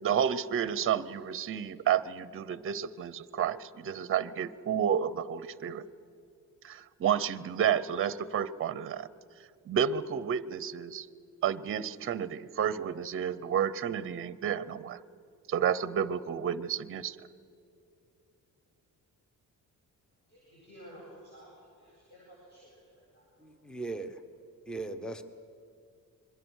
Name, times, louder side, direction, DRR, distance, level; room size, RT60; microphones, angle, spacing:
voice 1, 0.0-5.8 6.6-9.1 9.7-11.1 11.4-15.0 15.5-17.2, right 8 dB, 40° right, 17 dB, 0.7 m, -31 dB
voice 2, 20.3-23.5, equal, 30° left, -6 dB, 7.6 m, -53 dB
voice 3, 23.4-24.2 24.7-25.2, right 3 dB, ahead, 10 dB, 0.8 m, -38 dB
27.0 x 22.0 x 6.4 m, 2.6 s
cardioid pair, 160°, 33 cm